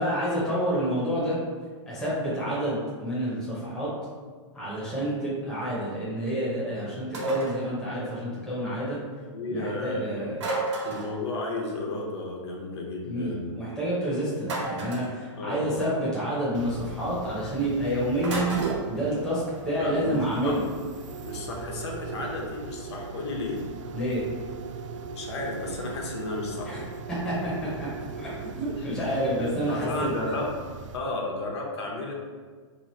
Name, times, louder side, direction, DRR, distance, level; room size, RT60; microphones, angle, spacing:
voice 1, 0.0-1.4 1.9-3.9 4.5-9.0 9.5-10.4 10.9-11.0 13.0-18.5 18.9-20.6 23.9-24.2 26.7-26.8 27.1-27.9 28.1-30.1, equal, 5° left, -9 dB, 0.6 m, -29 dB
sound 1, 7.1-7.6 10.4-11.2 14.4-15.1 18.2-18.8, right 2 dB, 70° right, 1.0 m, -31 dB
voice 2, 9.3-10.2 10.8-13.5 15.4-15.7 19.8-20.6 21.2-23.6 25.1-26.8 28.8-30.5 30.9-32.1, left 2 dB, 60° left, -1 dB, 0.8 m, -33 dB
sound 2, 16.5-31.0, right 4 dB, 90° right, 0.4 m, -38 dB
3.0 x 2.4 x 4.1 m, 1.5 s
hypercardioid pair, 175°, 16 cm